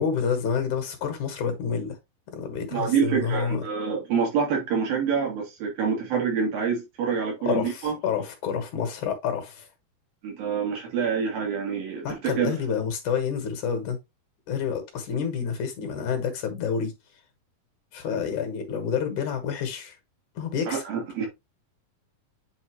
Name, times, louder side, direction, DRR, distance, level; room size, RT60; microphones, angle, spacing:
voice 1, 0.0-2.0 2.3-3.6 7.5-9.7 12.0-14.0 14.5-16.9 17.9-19.9 20.4-20.8, left 7 dB, 65° left, 2.5 m, -28 dB
voice 2, 2.7-8.0 10.2-12.5 20.7-21.3, right 6 dB, 75° right, 4.4 m, -26 dB
8.6 x 4.1 x 3.0 m
omnidirectional pair, 4.1 m